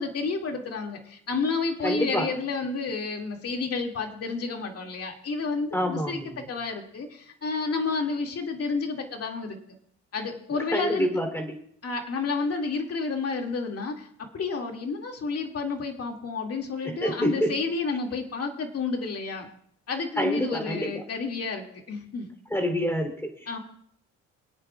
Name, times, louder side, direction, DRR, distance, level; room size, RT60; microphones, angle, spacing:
voice 1, 0.0-6.2 6.5-9.6 10.1-11.1 11.8-14.1 14.3-19.5 19.9-22.3 23.5-23.6, left 4 dB, 55° left, 2 dB, 2.3 m, -30 dB
voice 2, 1.8-2.3 5.7-6.5 10.7-11.6 16.8-17.5 20.1-21.0 22.5-23.6, equal, 10° left, 4 dB, 3.2 m, -27 dB
25.5 x 9.1 x 2.4 m, 0.65 s
cardioid pair, 90°, 30 cm